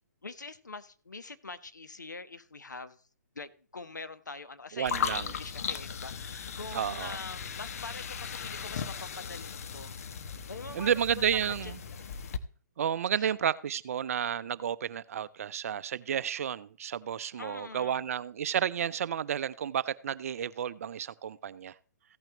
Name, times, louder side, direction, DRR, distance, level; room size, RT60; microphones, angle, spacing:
voice 1, 0.2-3.0 3.3-10.0 10.5-10.9 11.5-12.1 13.1-13.3 17.4-18.1, left 3 dB, 80° left, 1.1 m, -44 dB
voice 2, 4.8-5.3 6.7-7.2 10.7-11.8 12.8-21.7, right 9 dB, 55° right, 0.6 m, -31 dB
sound 1, 4.9-12.4, left 7 dB, 55° left, 1.1 m, -37 dB
15.5 x 8.9 x 3.0 m
figure-of-eight pair, 130°, 10 cm